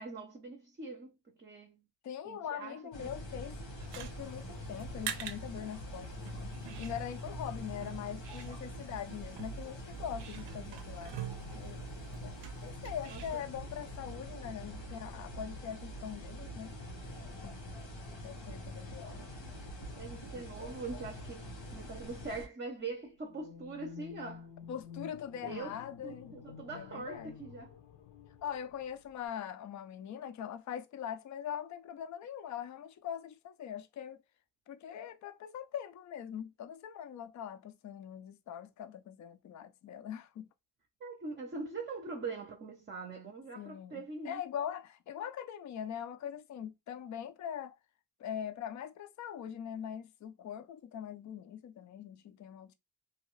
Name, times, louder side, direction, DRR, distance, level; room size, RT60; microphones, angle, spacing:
voice 1, 0.0-1.9 2.2-3.1 13.1-13.2 19.2-19.5 19.9-24.5 25.4-25.7 26.0-27.8 41.0-44.4, right 3 dB, 25° right, 0.6 m, -43 dB
voice 2, 2.0-3.6 3.9-11.2 11.5-11.8 12.2-12.4 12.6-16.7 17.4-17.6 18.2-19.2 24.7-26.3 26.7-27.3 28.4-34.2 34.7-40.5 43.5-47.8 48.2-52.7, left 9 dB, 45° left, 0.4 m, -42 dB
sound 1, 2.9-22.5, equal, 90° left, 1.3 m, -44 dB
fill kart and go, 3.8-13.4, right 9 dB, 70° right, 0.6 m, -47 dB
sound 2, 23.3-29.3, left 7 dB, 75° left, 0.8 m, -51 dB
2.7 x 2.3 x 3.0 m
cardioid pair, 90°, 44 cm